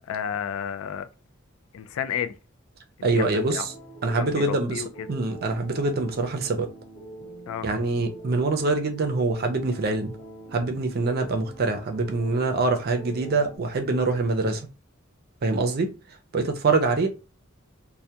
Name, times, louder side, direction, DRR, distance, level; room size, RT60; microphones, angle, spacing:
voice 1, 0.1-1.1 1.7-2.3 3.0-3.7 4.2-5.1 7.5-7.7, left 8 dB, 85° left, 0.3 m, -32 dB
voice 2, 3.0-3.6 4.0-4.8 5.1-6.7 7.6-10.1 10.5-14.6 15.4-15.9 16.3-17.1, right 3 dB, 50° right, 0.4 m, -24 dB
sound 1, 3.5-13.6, right 2 dB, 55° left, 1.0 m, -44 dB
2.2 x 2.1 x 2.7 m
head